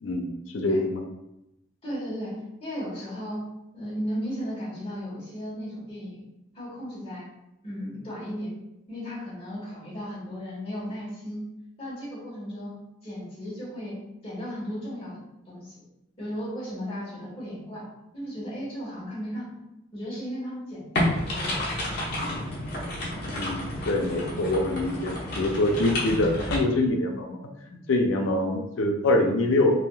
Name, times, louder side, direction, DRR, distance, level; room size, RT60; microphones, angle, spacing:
voice 1, 0.5-1.0 23.3-27.4 27.7-29.8, left 2 dB, 90° left, 2 dB, 0.5 m, -25 dB
voice 2, 1.8-3.4 3.7-6.2 6.5-7.3 7.6-8.5 8.9-11.4 11.8-12.8 13.0-15.8 16.2-17.8 18.1-19.6 19.9-21.6, equal, 30° left, -7 dB, 1.2 m, -35 dB
sound 1, 20.9-26.6, left 1 dB, 55° left, 0.9 m, -30 dB
3.4 x 2.5 x 2.3 m, 0.88 s
head